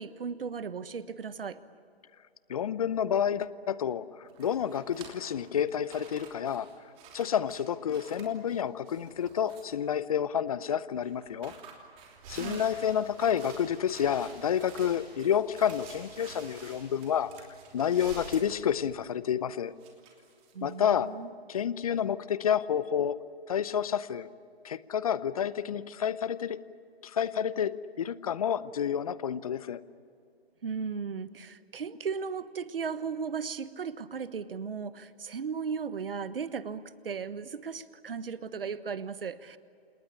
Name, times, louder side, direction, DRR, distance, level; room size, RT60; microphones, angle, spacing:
voice 1, 0.0-1.6 12.3-12.6 20.5-21.3 30.6-39.6, right 6 dB, 65° right, 14 dB, 1.3 m, -36 dB
voice 2, 2.5-4.1 4.4-6.7 7.1-11.5 12.3-17.3 17.7-19.7 20.6-21.1 21.5-23.2 23.5-24.3 24.6-26.6 27.0-29.8, left 8 dB, 35° left, 17 dB, 0.8 m, -29 dB
sound 1, 4.3-9.9 11.0-14.9 15.2-15.8 16.2-18.0 18.3-18.4 19.5-21.1, right 6 dB, 20° right, 3.1 m, -53 dB
sound 2, 12.2-19.1, right 4 dB, 35° right, 7.5 m, -49 dB
28.5 x 19.5 x 9.7 m, 2.3 s
figure-of-eight pair, 145°, 31 cm